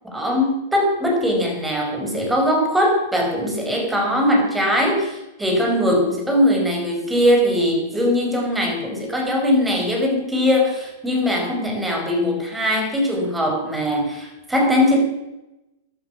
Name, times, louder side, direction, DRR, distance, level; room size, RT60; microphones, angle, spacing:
voice 1, 0.0-15.0, left 1 dB, 10° right, 1 dB, 5.3 m, -20 dB
15.0 x 11.5 x 6.0 m, 0.97 s
hypercardioid pair, 105°, 0 cm